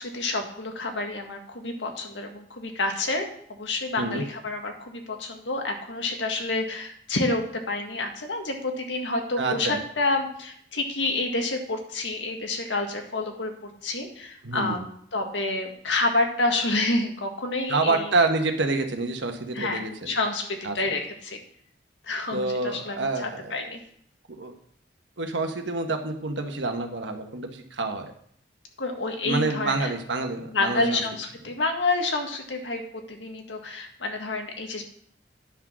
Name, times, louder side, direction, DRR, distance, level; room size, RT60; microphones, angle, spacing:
voice 1, 0.0-18.1 19.5-21.4 22.1-23.8 28.8-29.9 30.5-32.8 33.1-34.8, left 2 dB, 80° left, 3 dB, 1.8 m, -29 dB
voice 2, 9.4-9.8 14.4-14.8 17.7-20.1 20.6-20.7 22.3-23.6 24.3-24.5 25.2-28.1 29.2-31.0, right 3 dB, 80° right, 5 dB, 1.4 m, -27 dB
10.0 x 6.2 x 6.2 m, 0.63 s
head